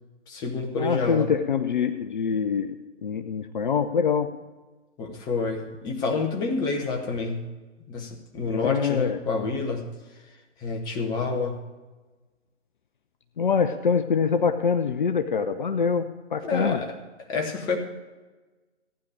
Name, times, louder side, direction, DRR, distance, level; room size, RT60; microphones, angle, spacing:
voice 1, 0.3-1.3 5.0-7.4 7.9-9.9 10.6-11.6 16.4-16.9 17.3-17.8, left 4 dB, 10° left, 3 dB, 0.9 m, -28 dB
voice 2, 0.8-2.7 3.0-4.3 8.5-9.2 13.4-16.8, left 6 dB, 45° left, 9 dB, 0.7 m, -24 dB
15.0 x 9.9 x 5.0 m, 1.2 s
figure-of-eight pair, 135°, 36 cm